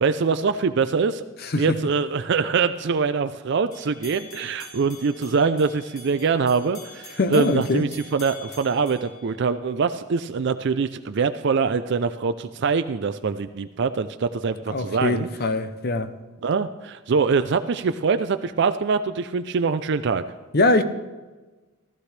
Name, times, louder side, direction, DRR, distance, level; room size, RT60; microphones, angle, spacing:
voice 1, 0.0-1.2 1.6-15.3 16.4-20.2, right 5 dB, 60° right, 0.4 m, -24 dB
voice 2, 1.4-1.8 7.2-7.8 14.7-16.1 20.5-20.8, left 2 dB, 50° left, 0.7 m, -22 dB
sound 1, 3.7-9.9, left 2 dB, 80° left, 3.2 m, -45 dB
14.5 x 14.5 x 3.3 m
head